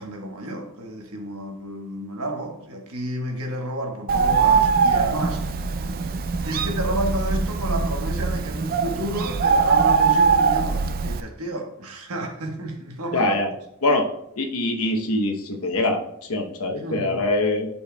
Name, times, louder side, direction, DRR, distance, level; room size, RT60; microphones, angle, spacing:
voice 1, 0.0-5.7 6.4-13.3 16.8-17.2, right 1 dB, 75° right, 2 dB, 1.2 m, -31 dB
Bird, 4.1-11.2, right 5 dB, 40° right, 0.3 m, -21 dB
voice 2, 13.1-13.5 13.8-14.1 14.4-17.7, left 2 dB, 75° left, 3 dB, 0.9 m, -23 dB
10.0 x 4.3 x 2.2 m, 0.75 s
head